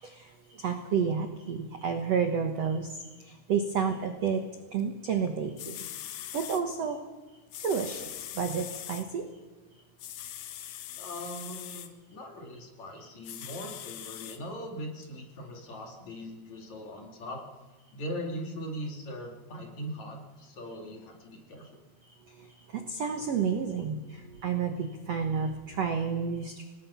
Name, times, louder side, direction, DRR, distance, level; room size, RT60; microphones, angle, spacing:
voice 1, 0.0-4.4 4.7-5.8 6.3-7.0 7.6-9.2 22.3-26.6, right 6 dB, 60° right, 5 dB, 1.7 m, -31 dB
sound 1, 5.3-5.4 5.6-6.6 7.5-9.1 10.0-11.9 13.2-14.4 15.0-15.1, left 12 dB, 85° left, 3.1 m, -41 dB
voice 2, 10.9-17.4 17.9-21.8, equal, 50° left, 1 dB, 3.6 m, -40 dB
27.0 x 19.0 x 5.8 m, 1.2 s
omnidirectional pair, 4.6 m